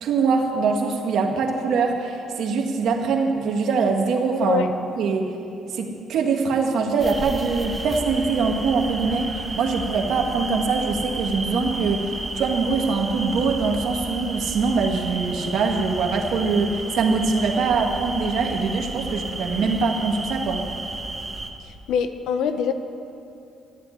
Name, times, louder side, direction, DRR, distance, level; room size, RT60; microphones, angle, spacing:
voice 1, 0.0-4.7 5.0-5.3 5.7-20.6, right 4 dB, 75° right, 2 dB, 1.8 m, -23 dB
sound 1, 7.0-21.5, right 2 dB, 20° right, 1.3 m, -32 dB
voice 2, 21.6-22.7, left 7 dB, 85° left, 9 dB, 0.9 m, -24 dB
13.0 x 8.4 x 9.8 m, 2.7 s
cardioid pair, 90°, 0 cm